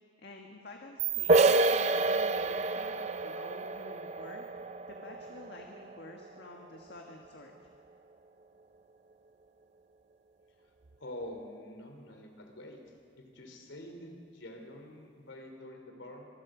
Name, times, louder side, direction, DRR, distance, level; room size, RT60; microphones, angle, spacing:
voice 1, 0.2-4.4 4.9-7.5, left 2 dB, 60° left, 1 dB, 1.6 m, -50 dB
sound 1, 1.0-3.9, right 15 dB, 65° right, 1.5 m, -40 dB
sound 2, 1.3-6.8, right 3 dB, 35° right, 0.5 m, -29 dB
voice 2, 11.0-12.8 13.2-16.3, left 1 dB, 85° left, 3 dB, 3.5 m, -46 dB
25.5 x 20.0 x 5.1 m, 2.2 s
head